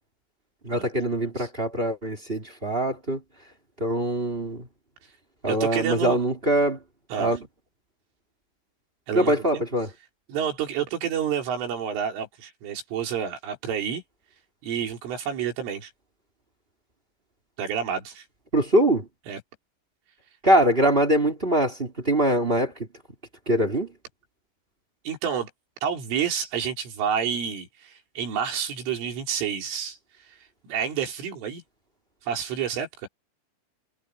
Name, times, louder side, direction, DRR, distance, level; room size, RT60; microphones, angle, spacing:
voice 1, 0.6-3.2 3.8-4.7 5.4-6.8 7.2-7.4 9.1-9.9 18.5-19.1 20.4-22.9 23.5-23.9, right 1 dB, 15° right, 2.1 m, -23 dB
voice 2, 5.5-6.2 7.1-7.4 9.1-9.6 10.3-14.0 14.6-15.9 17.6-18.3 19.3-19.4 25.1-25.5 25.8-30.0 30.6-31.6 32.2-33.1, right 8 dB, 85° right, 6.9 m, -29 dB
omnidirectional pair, 5.6 m